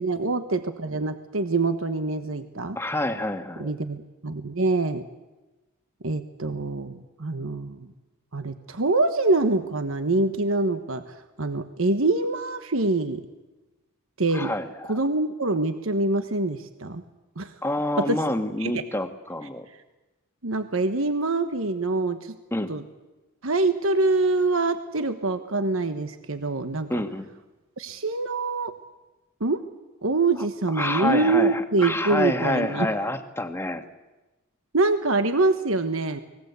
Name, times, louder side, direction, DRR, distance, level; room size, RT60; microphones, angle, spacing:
voice 1, 0.0-2.8 3.6-5.0 6.0-7.9 8.3-13.2 14.2-14.5 14.9-17.0 17.4-17.5 18.0-18.2 18.6-18.8 20.4-22.4 22.7-22.8 23.4-26.9 27.8-28.7 29.4-29.6 30.0-32.9 34.7-36.2, right 3 dB, 65° right, 9 dB, 1.3 m, -25 dB
voice 2, 2.7-3.7 14.3-15.0 17.6-19.7 22.5-22.7 26.9-27.2 30.7-33.8, left 1 dB, 10° left, 7 dB, 1.6 m, -27 dB
30.0 x 21.0 x 8.3 m, 1.1 s
head